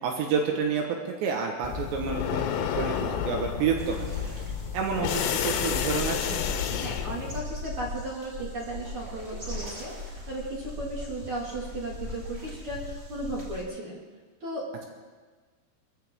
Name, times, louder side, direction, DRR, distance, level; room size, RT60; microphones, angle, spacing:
voice 1, 0.0-4.3 4.7-6.4, right 6 dB, 80° right, 2 dB, 3.5 m, -29 dB
sound 1, 1.6-7.4, left 8 dB, 80° left, 3.2 m, -30 dB
sound 2, 3.8-13.6, left 2 dB, 20° right, 2.1 m, -40 dB
voice 2, 6.7-14.0 14.4-14.7, right 2 dB, 40° right, -3 dB, 2.2 m, -35 dB
22.0 x 14.5 x 3.6 m, 1.4 s
omnidirectional pair, 5.1 m